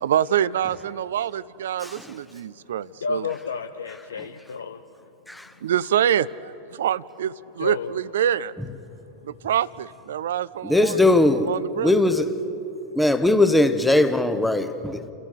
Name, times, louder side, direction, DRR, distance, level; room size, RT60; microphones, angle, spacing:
voice 1, 0.0-3.3 5.6-8.6 9.2-11.0 11.4-12.0, right 10 dB, 60° right, 20 dB, 0.4 m, -25 dB
voice 2, 3.0-4.8 7.6-7.9, left 5 dB, 70° left, 7 dB, 0.7 m, -31 dB
voice 3, 10.6-11.5 11.8-12.3 12.9-15.1, left 2 dB, 5° left, 10 dB, 1.1 m, -19 dB
29.5 x 14.5 x 6.7 m, 3.0 s
figure-of-eight pair, 90°, 0 cm